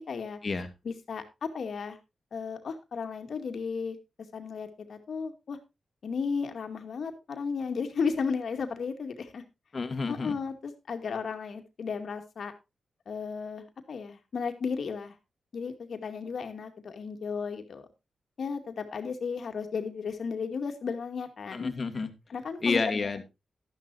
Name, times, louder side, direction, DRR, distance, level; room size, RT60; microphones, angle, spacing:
voice 1, 0.1-0.4 0.8-2.0 2.3-4.0 4.3-5.6 6.0-9.4 10.1-12.5 13.1-15.2 15.5-17.9 18.4-21.7 22.3-23.1, left 5 dB, 70° left, 6 dB, 2.2 m, -34 dB
voice 2, 9.7-10.4 21.5-22.1 22.6-23.2, left 4 dB, 45° left, 8 dB, 2.1 m, -29 dB
12.5 x 11.5 x 2.7 m, 0.24 s
cardioid pair, 70°, 0 cm